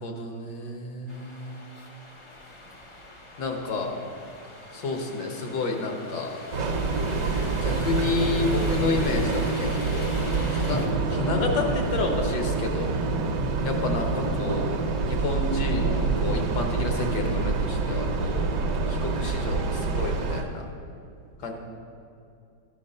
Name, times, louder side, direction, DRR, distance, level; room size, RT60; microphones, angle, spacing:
voice 1, 0.0-1.6 3.4-4.0 4.7-6.4 7.6-10.1 10.5-10.8 11.1-12.9 13.6-14.7 15.0-18.5 18.9-20.6 21.4-21.5, left 3 dB, 65° left, 3 dB, 1.6 m, -30 dB
sound 1, 1.1-10.9, left 1 dB, 45° left, 0.3 m, -42 dB
Train, 6.5-20.4, right 4 dB, 60° right, 1.2 m, -26 dB
12.5 x 5.2 x 5.5 m, 2.5 s
omnidirectional pair, 2.0 m